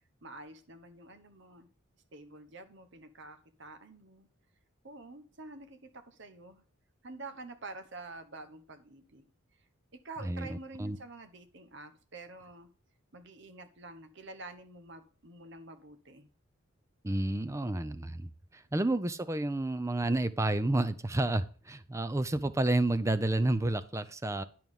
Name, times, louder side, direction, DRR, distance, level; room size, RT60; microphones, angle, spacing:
voice 1, 0.2-1.7 2.1-4.3 4.8-5.8 6.1-6.6 7.0-9.2 10.0-12.7 13.1-16.3, right 2 dB, 60° right, 8 dB, 1.1 m, -48 dB
voice 2, 10.2-11.0 17.0-24.4, right 2 dB, 15° right, 13 dB, 0.5 m, -30 dB
11.0 x 4.6 x 5.4 m, 0.40 s
head